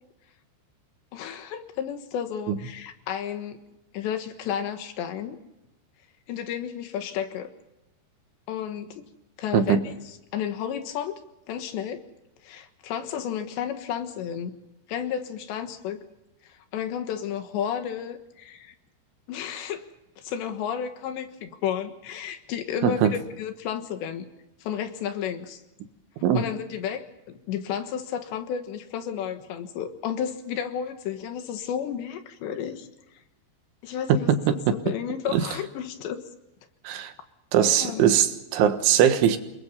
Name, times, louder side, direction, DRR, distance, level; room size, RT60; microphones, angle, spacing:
voice 1, 1.1-3.6 3.9-5.4 6.3-7.5 8.5-9.0 9.4-11.2 11.5-12.0 12.4-14.6 14.9-16.0 16.4-18.7 19.3-19.8 20.2-24.3 24.6-25.6 26.3-32.9 33.8-36.2 37.6-38.0, left 8 dB, 75° left, 3.5 m, -32 dB
voice 2, 34.1-34.8 35.3-35.4 36.9-37.1 37.5-39.4, right 9 dB, 80° right, 3.8 m, -21 dB
29.0 x 20.5 x 5.5 m
omnidirectional pair, 5.4 m